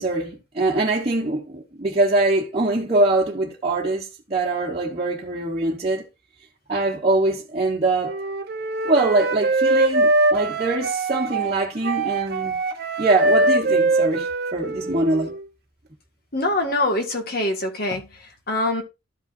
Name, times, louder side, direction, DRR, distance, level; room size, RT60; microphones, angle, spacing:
voice 1, 0.0-6.0 6.7-8.2 8.8-12.6 13.0-15.3, right 2 dB, 30° right, 1.3 m, -23 dB
Wind instrument woodwind instrument, 8.0-15.5, right 2 dB, 55° right, 1.0 m, -22 dB
voice 2, 16.3-18.8, left 2 dB, 55° left, 1.9 m, -24 dB
13.0 x 5.6 x 2.6 m
head